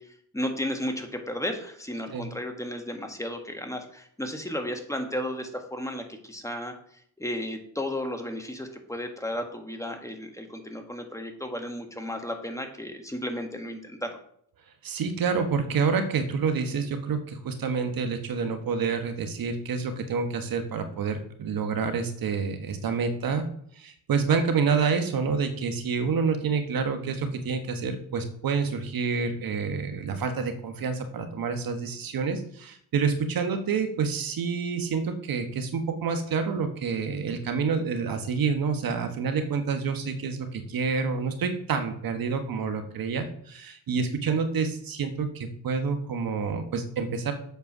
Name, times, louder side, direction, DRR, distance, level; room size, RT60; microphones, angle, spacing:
voice 1, 0.0-14.1, left 1 dB, 10° left, 4 dB, 1.7 m, -34 dB
voice 2, 14.8-23.5 23.7-47.3, right 5 dB, 60° right, 7 dB, 1.3 m, -28 dB
8.1 x 4.6 x 6.1 m, 0.66 s
supercardioid pair, 70°, 39 cm